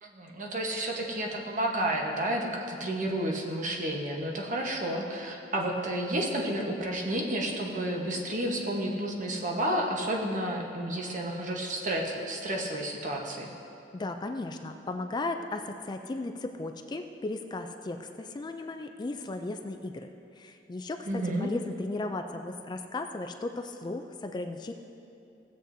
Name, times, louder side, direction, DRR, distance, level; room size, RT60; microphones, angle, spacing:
voice 1, 0.0-13.5 21.1-21.5, right 1 dB, 45° right, 0 dB, 1.1 m, -31 dB
voice 2, 13.9-20.1 20.4-24.7, left 2 dB, 25° left, 6 dB, 0.3 m, -36 dB
16.5 x 7.7 x 2.7 m, 2.7 s
head